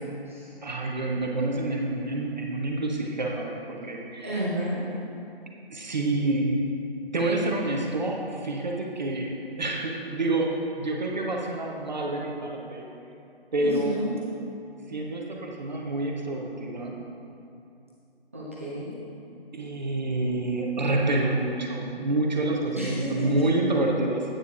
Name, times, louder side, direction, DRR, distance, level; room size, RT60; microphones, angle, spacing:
voice 1, 0.6-4.4 5.7-6.7 7.1-12.9 13.5-14.0 14.9-17.0 19.5-24.3, right 2 dB, 45° right, -1 dB, 0.9 m, -28 dB
voice 2, 4.2-4.8 13.6-14.1 18.3-19.0 22.8-23.4, equal, 15° right, -8 dB, 0.6 m, -31 dB
11.0 x 9.1 x 2.5 m, 2.7 s
figure-of-eight pair, 160°, 31 cm